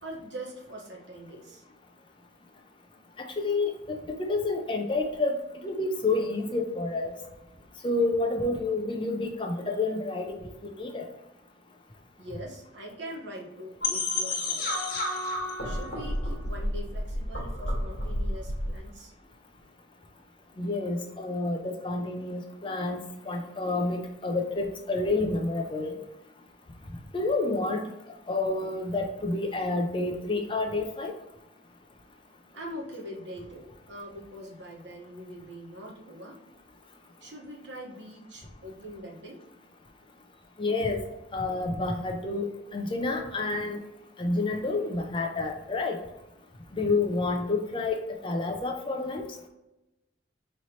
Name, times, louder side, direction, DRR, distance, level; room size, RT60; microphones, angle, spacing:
voice 1, 0.0-1.6 12.2-14.8 15.6-19.1 32.5-36.4 37.2-39.4, equal, 75° right, -1 dB, 1.1 m, -42 dB
voice 2, 3.2-5.4 5.6-7.1 7.8-11.1 20.6-25.9 27.1-27.9 28.3-31.1 40.6-41.0 41.3-43.8 44.2-46.0 46.7-49.2, left 3 dB, 25° left, 3 dB, 0.5 m, -29 dB
sound 1, 13.8-18.8, left 1 dB, 50° left, 1.2 m, -30 dB
5.3 x 3.1 x 2.8 m, 0.94 s
head